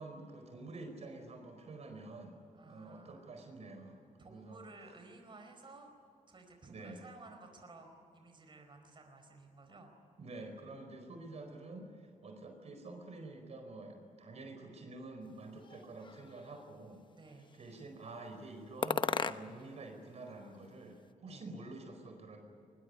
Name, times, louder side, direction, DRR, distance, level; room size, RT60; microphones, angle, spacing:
voice 1, 0.0-2.4 2.6-4.6 6.7-7.1 10.2-17.0 17.5-22.4, right 2 dB, 55° right, 4 dB, 4.6 m, -48 dB
voice 2, 2.5-3.3 4.2-5.9 6.3-9.9 17.1-17.5 21.2-21.4, right 3 dB, 35° right, 4 dB, 4.6 m, -55 dB
sound 1, 15.6-16.6 17.3-17.9 18.8-19.8 20.0-21.1, left 5 dB, 35° left, 0.9 m, -38 dB
22.5 x 21.5 x 9.8 m, 2.5 s
cardioid pair, 100°, 13 cm